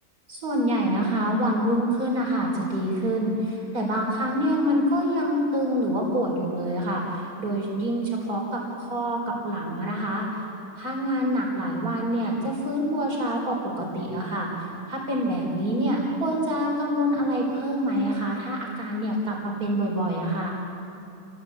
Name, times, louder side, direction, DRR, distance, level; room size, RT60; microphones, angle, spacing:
voice 1, 0.3-10.4 10.8-20.5, equal, 75° right, -2 dB, 5.2 m, -26 dB
29.5 x 21.0 x 8.6 m, 2.6 s
omnidirectional pair, 1.6 m